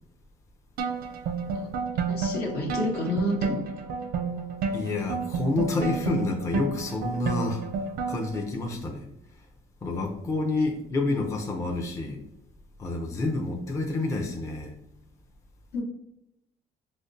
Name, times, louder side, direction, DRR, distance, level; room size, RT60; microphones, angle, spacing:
sound 1, 0.8-8.4, right 5 dB, 65° right, 0.4 m, -31 dB
voice 1, 2.1-3.6 10.6-10.7 15.7-15.8, left 1 dB, 70° left, 0 dB, 0.9 m, -29 dB
voice 2, 4.7-7.7 8.1-9.1 9.8-12.2 12.8-14.7, left 3 dB, 20° left, 1 dB, 0.4 m, -28 dB
5.0 x 2.1 x 2.6 m, 0.79 s
cardioid pair, 110°, 17 cm